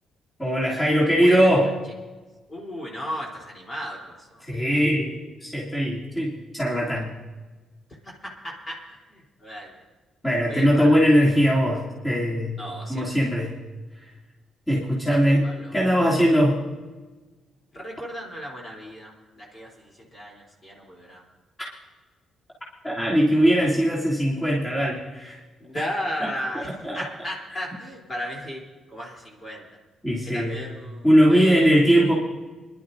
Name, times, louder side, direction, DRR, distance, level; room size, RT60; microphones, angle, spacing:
voice 1, 0.4-1.7 4.5-5.1 5.4-7.1 10.2-12.6 12.9-13.5 14.0-14.1 14.7-16.6 22.8-25.4 25.7-25.8 26.2-26.3 26.8-27.0 30.0-30.6 31.0-32.1, equal, 15° left, -7 dB, 3.0 m, -20 dB
voice 2, 1.2-1.5 2.5-4.4 8.0-9.7 10.5-11.0 12.6-13.1 15.1-15.2 15.4-15.8 17.7-21.2 25.6-28.6 28.9-29.7 30.2-31.8, equal, 35° left, -2 dB, 3.5 m, -35 dB
27.5 x 11.5 x 2.7 m, 1.3 s
cardioid pair, 90°, 0 cm